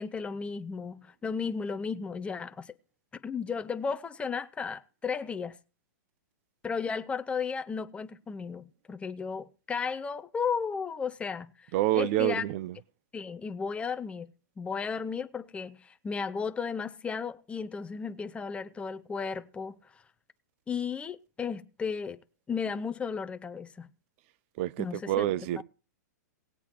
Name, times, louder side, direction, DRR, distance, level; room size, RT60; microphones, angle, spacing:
voice 1, 0.0-2.7 3.2-5.6 6.6-12.4 13.1-14.3 14.6-19.8 20.7-22.2 22.5-23.9 24.8-25.3 25.6-25.7, left 5 dB, 10° left, 0.7 m, -34 dB
voice 2, 11.7-12.8 24.6-25.6, right 15 dB, 45° right, 0.5 m, -28 dB
19.0 x 8.2 x 3.0 m
hypercardioid pair, 135°, 10 cm